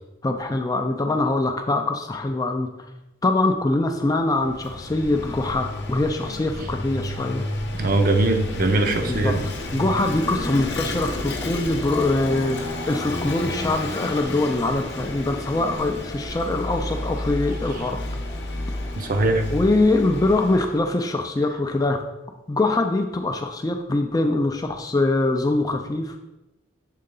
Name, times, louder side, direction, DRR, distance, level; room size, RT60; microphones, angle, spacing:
voice 1, 0.2-2.7 3.2-7.4 9.0-18.0 19.5-22.0 22.5-26.2, left 2 dB, 20° left, 5 dB, 0.3 m, -23 dB
Vehicle / Engine, 4.2-20.9, left 1 dB, 55° left, 0.7 m, -31 dB
voice 2, 7.8-9.4 18.9-19.4, right 2 dB, 45° right, 5 dB, 0.6 m, -21 dB
6.5 x 3.8 x 3.7 m, 1.0 s
head